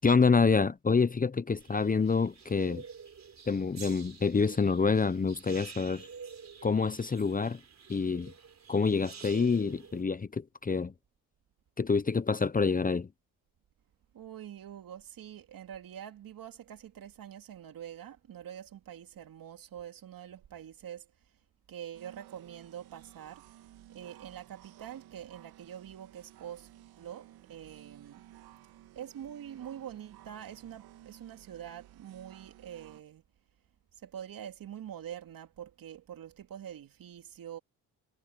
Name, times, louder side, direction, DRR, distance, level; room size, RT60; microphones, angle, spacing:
voice 1, 0.0-2.8 3.5-6.1 6.6-7.6 7.9-8.3 8.7-10.9 11.8-13.1, left 5 dB, 25° left, 0.8 m, -27 dB
sound 1, 1.6-10.0, right 6 dB, 45° right, 4.2 m, -49 dB
voice 2, 14.1-21.1 21.7-23.4 23.9-26.7 27.0-28.2 28.9-33.2 34.0-37.6, right 10 dB, 65° right, 3.1 m, -45 dB
sound 2, 21.9-33.0, right 13 dB, 80° right, 3.3 m, -55 dB
supercardioid pair, 65°, 37 cm